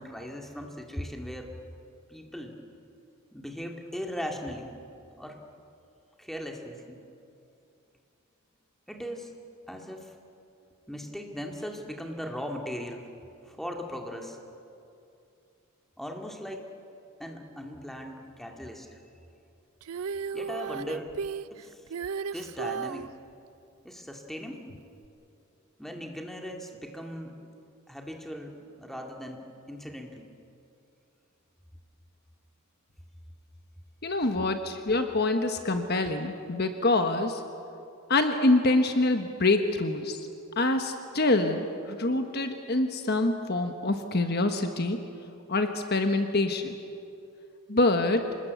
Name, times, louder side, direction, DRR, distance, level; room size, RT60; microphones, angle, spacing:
voice 1, 0.0-1.5 2.1-2.6 3.3-4.7 5.2-5.4 6.2-7.0 8.9-9.3 9.7-10.1 10.9-13.1 13.5-14.4 16.0-16.7 17.2-19.0 20.3-21.1 21.5-21.8 22.3-23.1 23.8-24.6 25.8-27.4 27.9-29.4 29.7-30.3, equal, ahead, 2 dB, 2.2 m, -38 dB
Female singing, 19.8-23.1 25.0-25.1, right 6 dB, 85° right, 0.5 m, -34 dB
voice 2, 34.0-37.4 38.1-40.2 40.6-45.0 45.5-46.8 47.7-48.4, left 2 dB, 45° left, 6 dB, 1.3 m, -25 dB
26.5 x 20.0 x 8.4 m, 2.6 s
head